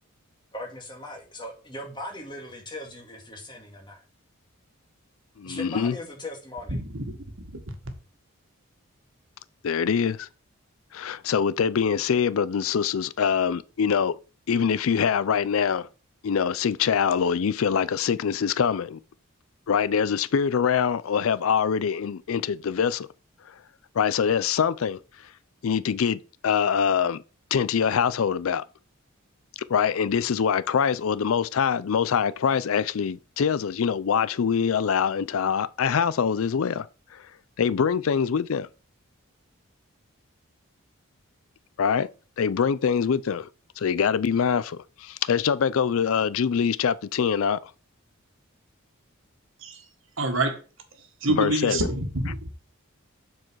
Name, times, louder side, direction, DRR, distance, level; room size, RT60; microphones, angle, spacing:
voice 1, 0.5-4.0 5.4-6.8, left 1 dB, 20° left, 2.1 m, -39 dB
voice 2, 5.4-6.0 9.6-10.3 10.9-14.2 14.5-15.9 16.2-19.0 19.7-23.1 24.0-25.0 25.6-27.2 27.5-28.6 29.7-36.9 37.1-37.2 37.6-38.7 41.8-42.1 42.4-43.5 43.8-47.7 51.3-51.9, left 7 dB, 75° left, 0.4 m, -24 dB
voice 3, 6.7-7.0 49.6-49.8 50.2-50.6 51.2-52.4, right 2 dB, 65° right, 1.7 m, -26 dB
7.6 x 4.7 x 6.2 m
head